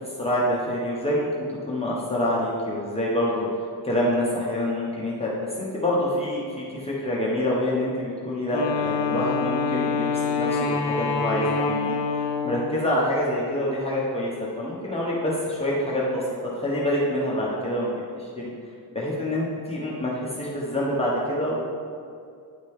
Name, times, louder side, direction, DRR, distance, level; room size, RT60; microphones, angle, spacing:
voice 1, 0.2-1.3 1.7-3.5 3.8-12.0 12.4-17.9 18.2-18.5 18.9-21.6, left 1 dB, 15° left, -6 dB, 1.1 m, -26 dB
Wind instrument woodwind instrument, 8.5-12.8, left 5 dB, 75° left, 0.9 m, -26 dB
9.6 x 5.1 x 3.6 m, 2.4 s
cardioid pair, 120°, 42 cm